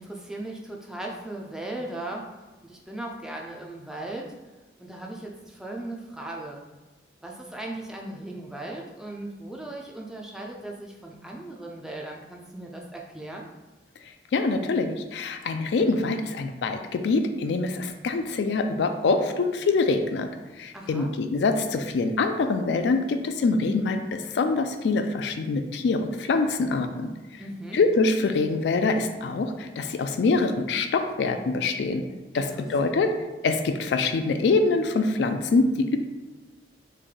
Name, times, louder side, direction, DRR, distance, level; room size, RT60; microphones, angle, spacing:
voice 1, 0.0-4.3 4.8-6.6 7.2-13.5 20.7-21.1 27.4-27.8 32.3-33.0, right 1 dB, 5° right, -1 dB, 0.3 m, -38 dB
voice 2, 14.3-20.3 20.6-27.1 27.7-32.0 32.3-33.1 33.4-36.0, left 3 dB, 75° left, 7 dB, 0.3 m, -24 dB
3.2 x 2.5 x 3.6 m, 1.2 s
head